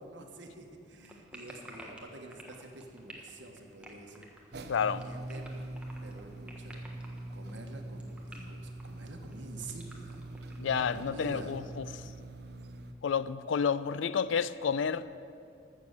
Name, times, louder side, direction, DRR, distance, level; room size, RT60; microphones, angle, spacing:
voice 1, 0.0-4.3 4.9-5.6 6.0-6.8 7.3-10.3 10.7-11.6, right 2 dB, 80° right, 1.3 m, -47 dB
sound 1, 1.0-11.0, right 1 dB, 5° right, 1.2 m, -51 dB
sound 2, 4.5-12.9, right 1 dB, 60° right, 0.7 m, -43 dB
voice 2, 4.7-5.0 10.6-12.1 13.0-15.0, left 6 dB, 85° left, 0.4 m, -30 dB
14.0 x 6.9 x 6.7 m
head